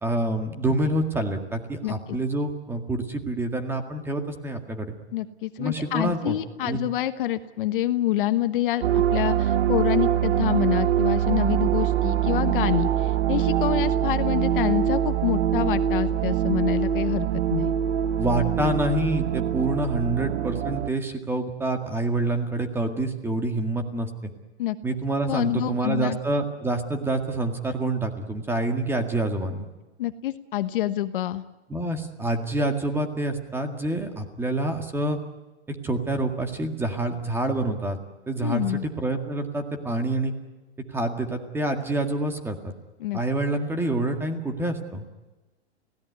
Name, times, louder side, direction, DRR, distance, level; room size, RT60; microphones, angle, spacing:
voice 1, 0.0-5.0 5.6-6.4 6.6-6.8 18.2-24.3 24.8-29.7 31.7-35.2 35.7-38.0 38.3-40.3 40.9-42.7 43.1-45.0, right 2 dB, 5° right, 6 dB, 1.9 m, -27 dB
voice 2, 1.8-2.2 5.1-17.7 24.6-24.8 25.3-26.2 30.0-31.4 38.4-38.9 43.0-43.2, left 13 dB, 50° left, 10 dB, 1.3 m, -27 dB
sound 1, 8.8-20.9, right 10 dB, 75° right, 1.1 m, -24 dB
29.0 x 17.0 x 9.6 m, 1.1 s
hypercardioid pair, 155°, 33 cm